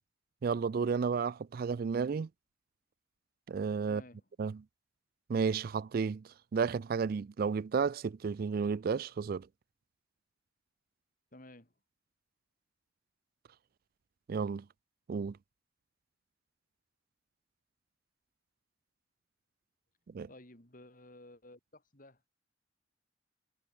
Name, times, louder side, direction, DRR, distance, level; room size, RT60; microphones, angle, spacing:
voice 1, 0.4-2.3 3.5-4.0 4.4-4.6 5.3-6.2 6.5-9.5 14.3-14.6 15.1-15.4 20.1-20.3, right 5 dB, 50° right, 0.3 m, -32 dB
voice 2, 3.8-4.3 11.3-11.7 20.3-22.2, left 1 dB, 45° left, 3.8 m, -54 dB
head